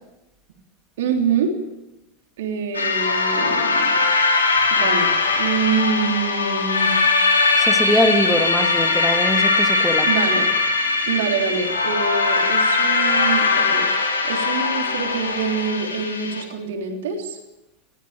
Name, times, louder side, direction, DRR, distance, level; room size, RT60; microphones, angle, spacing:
voice 1, 1.0-1.5 2.4-4.0 4.7-6.9 10.0-10.5 11.1-13.9 14.2-17.4, right 6 dB, 55° right, 3 dB, 3.3 m, -25 dB
sound 1, 2.7-16.4, left 3 dB, 75° left, 3.0 m, -20 dB
voice 2, 7.6-10.1, equal, ahead, 5 dB, 2.0 m, -22 dB
21.0 x 15.0 x 9.0 m, 0.97 s
figure-of-eight pair, 90°, 0 cm